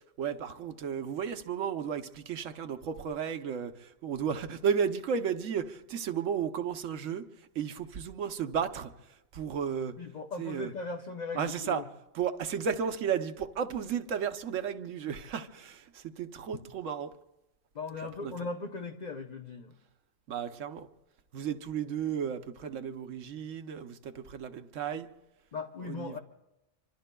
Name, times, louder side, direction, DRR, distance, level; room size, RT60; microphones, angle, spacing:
voice 1, 0.2-3.7 4.0-7.2 7.6-8.9 9.3-9.9 10.4-10.7 11.3-11.8 12.1-17.1 18.2-18.3 20.3-20.9 21.3-25.1 25.8-26.2, right 7 dB, 85° right, 9 dB, 1.2 m, -33 dB
voice 2, 10.0-11.9 17.7-19.8 25.5-26.2, left 4 dB, 40° left, 3 dB, 0.7 m, -38 dB
25.5 x 25.0 x 2.2 m, 0.93 s
omnidirectional pair, 1.3 m